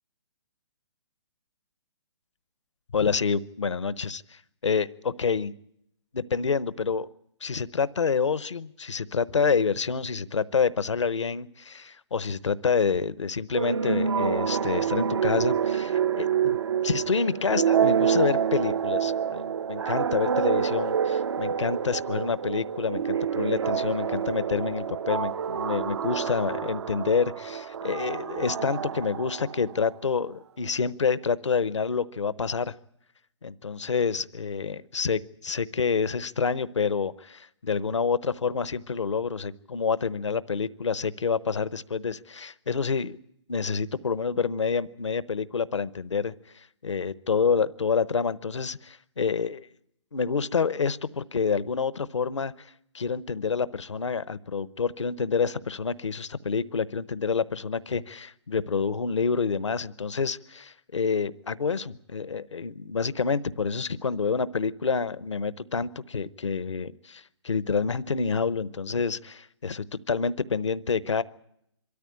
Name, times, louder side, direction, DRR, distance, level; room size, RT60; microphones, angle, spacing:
voice 1, 2.9-5.5 6.1-7.1 7.4-32.7 33.4-43.2 43.5-49.7 50.1-71.2, left 5 dB, 85° left, 17 dB, 0.9 m, -28 dB
sound 1, 13.5-29.9, right 7 dB, 70° right, 0.7 m, -27 dB
24.0 x 13.5 x 10.0 m, 0.78 s
hypercardioid pair, 135°, 15 cm